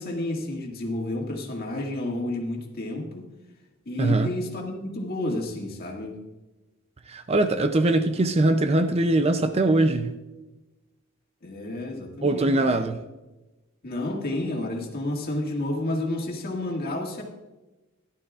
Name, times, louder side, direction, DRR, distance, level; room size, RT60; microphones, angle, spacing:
voice 1, 0.0-3.3 3.9-6.2 11.4-12.7 13.8-17.2, left 1 dB, 45° left, 2.0 m, -30 dB
voice 2, 7.1-10.1 12.2-13.0, right 2 dB, 30° right, 0.5 m, -22 dB
15.0 x 11.5 x 2.4 m
head